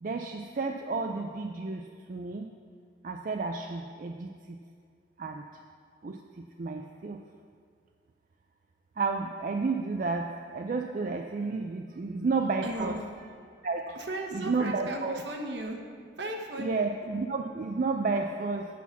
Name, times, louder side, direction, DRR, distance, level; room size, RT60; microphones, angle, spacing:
voice 1, 0.0-2.4 3.0-4.3 5.2-5.4 6.0-6.2 6.6-7.2 9.0-13.0 13.6-13.9 14.3-15.2 16.6-18.7, right 4 dB, 45° right, 3 dB, 0.4 m, -31 dB
voice 2, 12.6-13.0 13.9-15.8 16.2-16.8, right 1 dB, 70° right, 2 dB, 1.1 m, -36 dB
8.4 x 5.8 x 7.0 m, 2.1 s
head